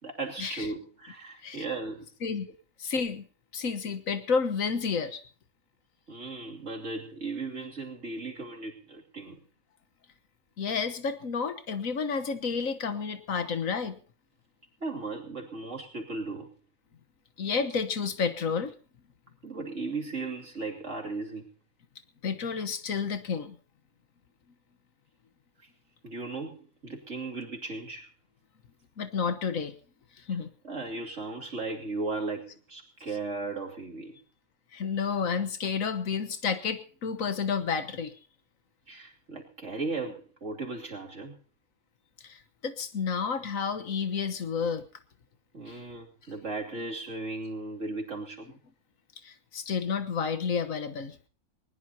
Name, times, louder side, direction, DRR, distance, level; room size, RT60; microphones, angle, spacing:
voice 1, 0.0-2.1 6.1-9.4 14.8-16.5 19.4-21.4 26.0-28.1 30.6-34.2 38.9-41.4 45.5-48.6, right 3 dB, 60° right, 0 dB, 3.1 m, -36 dB
voice 2, 2.8-3.3 3.5-5.2 10.6-14.0 17.4-18.7 22.2-23.6 29.0-29.7 30.3-30.5 34.7-38.1 42.2-44.9 45.7-45.8 49.2-51.2, left 5 dB, 80° left, 11 dB, 1.6 m, -30 dB
20.5 x 19.5 x 2.9 m, 0.39 s
omnidirectional pair, 1.4 m